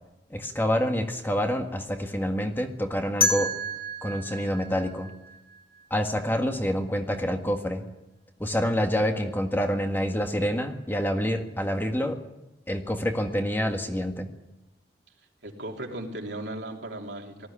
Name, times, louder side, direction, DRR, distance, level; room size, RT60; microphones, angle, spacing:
voice 1, 0.3-3.5 4.0-5.1 5.9-7.9 8.4-12.2 12.7-14.3, equal, 10° left, 4 dB, 1.7 m, -27 dB
sound 1, 3.2-6.1, left 2 dB, 30° left, 2.0 m, -30 dB
voice 2, 15.4-17.5, right 1 dB, 75° right, 1 dB, 3.3 m, -36 dB
19.0 x 14.5 x 10.0 m, 0.97 s
head